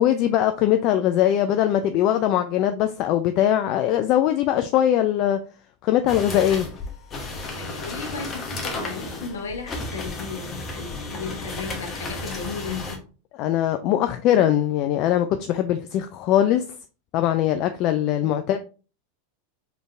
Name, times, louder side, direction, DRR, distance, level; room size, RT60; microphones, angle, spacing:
voice 1, 0.0-5.4 5.8-6.6 13.4-16.6 17.1-18.6, left 11 dB, 50° left, 0.3 m, -21 dB
sound 1, 6.1-13.0, left 2 dB, 30° left, 1.0 m, -33 dB
voice 2, 6.3-6.7 7.4-13.0 18.2-18.6, left 5 dB, 75° left, 0.9 m, -35 dB
4.0 x 3.3 x 2.5 m
hypercardioid pair, 95°, 0 cm